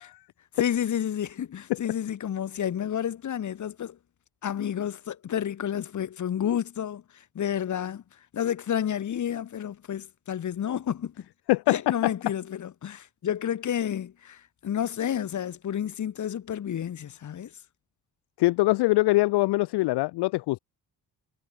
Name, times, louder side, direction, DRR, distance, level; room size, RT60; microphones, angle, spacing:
voice 1, 0.5-4.0 4.4-8.0 8.3-11.3 11.7-17.5, left 9 dB, 40° left, 0.9 m, -30 dB
voice 2, 18.4-20.6, left 20 dB, 65° left, 0.5 m, -22 dB
hypercardioid pair, 45°, 43 cm